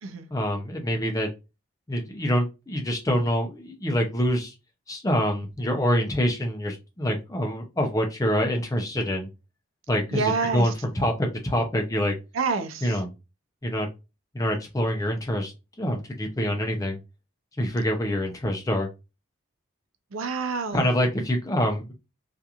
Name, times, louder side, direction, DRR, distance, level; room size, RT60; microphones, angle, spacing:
voice 1, 0.3-1.3 1.9-4.5 4.9-9.3 9.9-12.1 12.8-13.1 13.6-13.9 14.3-15.5 15.8-17.0 17.6-18.9 20.7-21.9, equal, 15° left, 0.5 m, -26 dB
voice 2, 10.1-10.7 12.3-13.0 20.1-21.0, right 4 dB, 80° right, 0.5 m, -28 dB
2.8 x 2.4 x 2.3 m
head